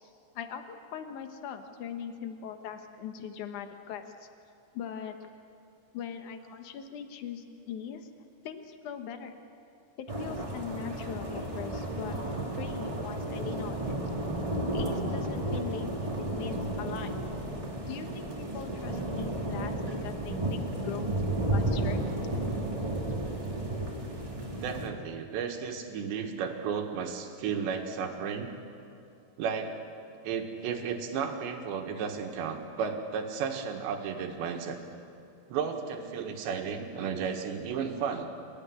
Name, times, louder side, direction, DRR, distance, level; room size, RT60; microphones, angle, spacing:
voice 1, 0.4-4.3 4.7-5.2 5.9-8.1 8.4-9.4 10.0-12.2 12.6-14.1 14.7-16.1 16.4-17.2 17.9-21.1 21.5-22.0, left 8 dB, 65° left, 6 dB, 2.0 m, -41 dB
sound 1, 10.1-24.9, right 1 dB, 15° right, 1.1 m, -33 dB
voice 2, 24.6-28.5 29.4-29.7 30.2-34.8 35.5-38.3, right 6 dB, 70° right, 4 dB, 3.9 m, -33 dB
27.5 x 16.0 x 9.9 m, 2.7 s
omnidirectional pair, 5.4 m